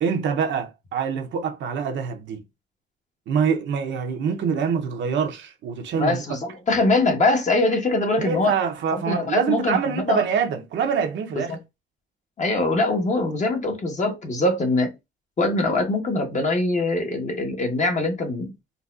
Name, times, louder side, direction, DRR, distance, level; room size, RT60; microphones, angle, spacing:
voice 1, 0.0-2.4 3.3-6.2 8.2-11.6, right 6 dB, 70° right, 0.7 m, -25 dB
voice 2, 6.0-8.5 8.9-10.2 11.3-11.6 12.4-14.9 15.4-18.5, left 2 dB, 35° left, 1.0 m, -23 dB
3.9 x 2.3 x 2.4 m
cardioid pair, 90°, 20 cm